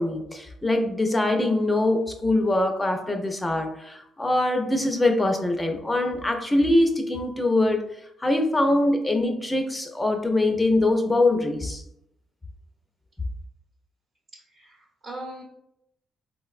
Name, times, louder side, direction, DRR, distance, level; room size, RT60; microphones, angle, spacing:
voice 1, 0.0-7.8 8.2-11.8, left 2 dB, 15° left, 4 dB, 0.4 m, -23 dB
voice 2, 14.3-15.4, right 1 dB, 55° right, -4 dB, 0.8 m, -40 dB
3.9 x 2.1 x 2.3 m, 0.79 s
cardioid pair, 90°, 0 cm